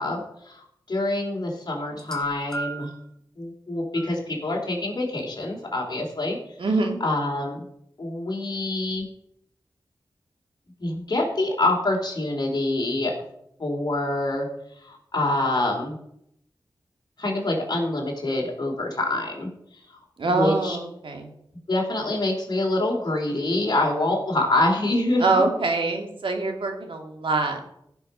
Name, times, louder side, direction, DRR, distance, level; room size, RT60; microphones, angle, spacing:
voice 1, 0.0-2.9 3.4-6.4 7.0-7.6 8.0-9.0 10.8-13.1 13.6-14.5 14.8-16.0 17.2-19.5 20.2-20.8 21.7-25.5, left 2 dB, 55° left, -1 dB, 3.4 m, -26 dB
sound 1, 1.9-3.1 3.9-4.1 5.2-5.3, right 3 dB, 5° left, 2.3 m, -36 dB
voice 2, 6.6-7.0 20.2-21.3 25.2-27.6, right 3 dB, 85° right, 3 dB, 2.2 m, -24 dB
16.0 x 5.9 x 5.5 m, 0.75 s
wide cardioid pair, 90°, 9 cm